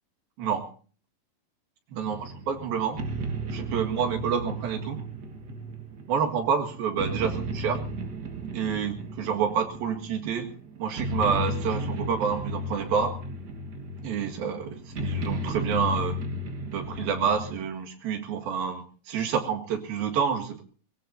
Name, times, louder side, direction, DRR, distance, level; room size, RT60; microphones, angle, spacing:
voice 1, 0.4-0.7 1.9-3.0 3.5-5.0 6.1-7.8 8.5-10.5 10.8-13.2 14.0-16.2 16.7-20.6, right 7 dB, 75° right, 4 dB, 3.7 m, -28 dB
sound 1, 2.0-17.6, equal, 45° right, 1.4 m, -34 dB
22.5 x 21.0 x 2.8 m, 0.40 s
omnidirectional pair, 4.2 m